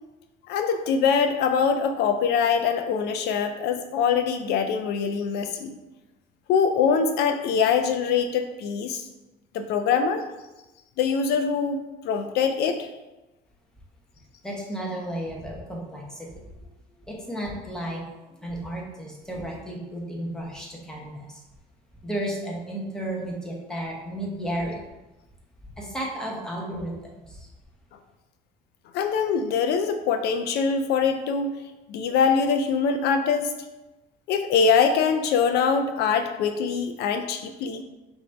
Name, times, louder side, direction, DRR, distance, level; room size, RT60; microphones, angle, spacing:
voice 1, 0.5-5.7 6.5-9.1 9.5-10.2 11.0-12.9 28.9-31.5 31.9-33.5 34.3-37.8, left 6 dB, 80° left, 7 dB, 0.4 m, -23 dB
voice 2, 14.4-16.3 16.6-16.7 17.0-18.0 18.4-21.4 22.0-24.8 25.8-27.5, right 1 dB, 5° left, -2 dB, 1.0 m, -33 dB
4.9 x 2.6 x 3.3 m, 1.1 s
cardioid pair, 110°, 17 cm